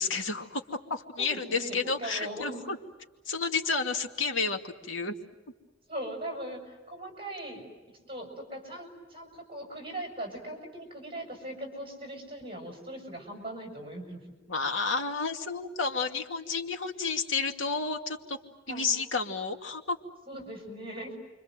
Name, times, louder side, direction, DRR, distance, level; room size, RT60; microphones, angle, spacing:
voice 1, 0.0-2.8 3.3-5.1 14.5-18.4 18.7-20.0, left 4 dB, 90° left, 4 dB, 2.5 m, -31 dB
voice 2, 1.2-2.7 5.9-7.7 8.1-14.2 18.7-18.9 20.3-21.2, right 1 dB, 30° right, 2 dB, 7.0 m, -40 dB
29.5 x 25.0 x 7.8 m, 1.2 s
head